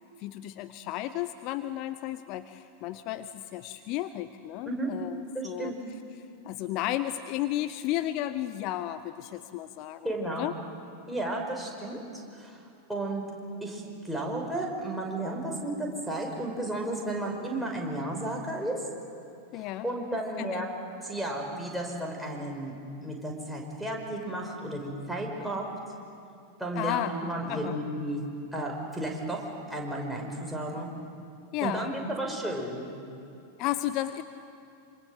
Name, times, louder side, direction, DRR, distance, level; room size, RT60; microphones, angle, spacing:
voice 1, 0.2-5.7 6.4-10.5 19.5-19.9 20.4-20.6 26.8-27.1 27.5-27.8 31.5-31.9 33.6-34.2, left 14 dB, 40° left, 11 dB, 0.8 m, -33 dB
voice 2, 5.3-5.8 10.0-10.5 11.1-12.6 12.9-13.3 13.6-18.7 19.5-20.7 21.0-25.7 26.6-28.2 28.5-30.9 31.6-32.9, right 1 dB, ahead, -1 dB, 5.6 m, -33 dB
26.5 x 26.5 x 8.0 m, 2.6 s
figure-of-eight pair, 90°, 0 cm